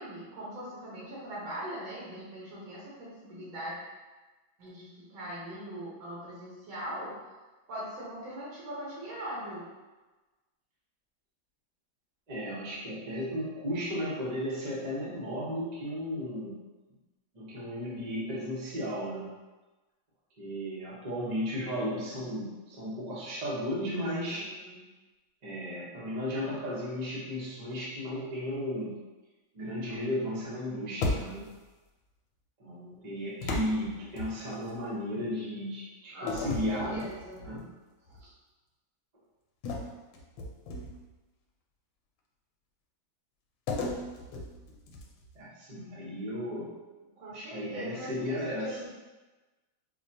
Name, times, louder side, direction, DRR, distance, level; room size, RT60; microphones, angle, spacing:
voice 1, 0.0-3.8 4.6-7.3 7.7-9.7 24.3-24.8 36.1-37.4 38.1-38.3 47.2-48.9, right 1 dB, 85° right, -7 dB, 1.8 m, -41 dB
voice 2, 12.3-16.6 17.3-19.3 20.4-24.5 25.4-29.0 29.5-31.5 32.6-37.1 37.4-37.7 45.3-46.7 47.3-48.7, equal, 40° right, -7 dB, 0.6 m, -35 dB
sound 1, 31.0-31.7 33.4-34.8 36.3-37.6 38.1-38.3 39.6-41.1 43.7-45.3, left 2 dB, 85° left, 1.4 m, -35 dB
4.8 x 2.2 x 2.7 m, 1.2 s
omnidirectional pair, 2.2 m